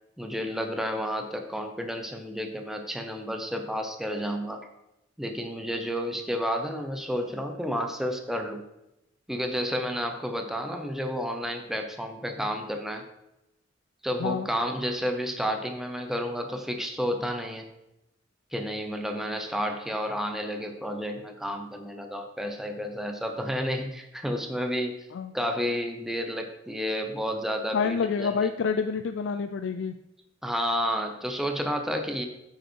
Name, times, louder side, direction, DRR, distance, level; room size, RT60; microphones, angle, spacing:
voice 1, 0.2-4.6 5.2-8.6 9.3-13.0 14.0-17.7 18.5-24.9 25.3-28.5 30.4-32.3, equal, ahead, 4 dB, 0.7 m, -31 dB
voice 2, 27.7-29.9, left 5 dB, 65° left, 8 dB, 0.4 m, -27 dB
8.9 x 5.5 x 4.5 m, 0.89 s
head